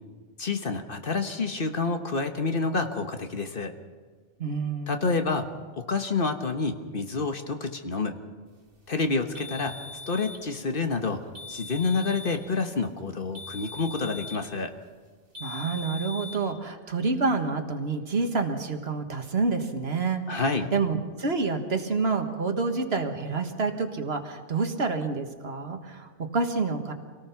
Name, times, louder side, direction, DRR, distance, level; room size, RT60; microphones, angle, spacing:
voice 1, 0.4-3.7 4.9-8.1 8.9-9.8 10.1-11.2 11.5-14.7 20.3-20.7, left 4 dB, 50° left, 6 dB, 1.4 m, -28 dB
voice 2, 4.4-5.1 15.4-20.4 20.7-26.9, right 4 dB, 60° right, 6 dB, 1.8 m, -28 dB
sound 1, 9.3-10.5 11.3-12.5 13.3-14.5 15.3-16.5, left 3 dB, 80° right, 2.7 m, -40 dB
26.0 x 18.0 x 5.9 m, 1.5 s
omnidirectional pair, 1.2 m